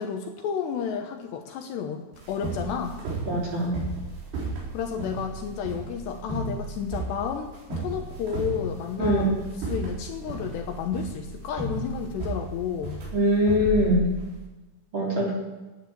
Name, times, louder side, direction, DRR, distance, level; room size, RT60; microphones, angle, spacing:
voice 1, 0.0-3.0 4.7-9.4 9.7-13.0, left 7 dB, 75° left, 4 dB, 2.9 m, -31 dB
sound 1, 2.1-14.4, right 2 dB, 65° right, 6.4 m, -34 dB
voice 2, 3.3-3.8 9.0-9.3 13.1-14.1 14.9-15.3, equal, 30° right, -3 dB, 3.5 m, -22 dB
13.0 x 9.6 x 8.7 m, 1.1 s
omnidirectional pair, 5.4 m